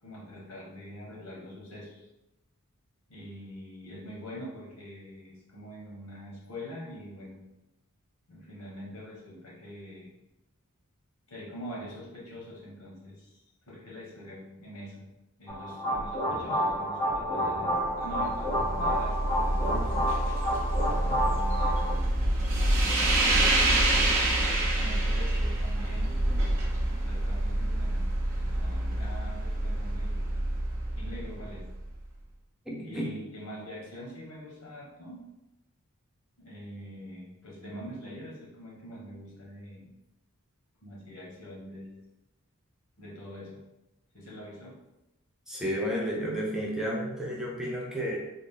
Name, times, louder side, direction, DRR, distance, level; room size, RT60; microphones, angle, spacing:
voice 1, 0.0-2.1 3.1-7.4 8.3-10.1 11.3-15.1 15.4-20.1 21.1-22.3 22.7-26.8 27.0-28.1 28.3-30.3 30.9-31.7 32.8-35.2 36.4-39.9 40.8-41.9 43.0-43.6 44.1-44.8, equal, 70° left, -4 dB, 1.3 m, -44 dB
sound 1, 15.5-21.9, equal, 15° left, 0.8 m, -29 dB
sound 2, 17.9-32.0, right 1 dB, 60° right, 0.7 m, -27 dB
voice 2, 32.7-33.1 45.5-48.2, equal, 5° right, -3 dB, 0.4 m, -32 dB
3.8 x 2.0 x 3.6 m, 0.95 s
head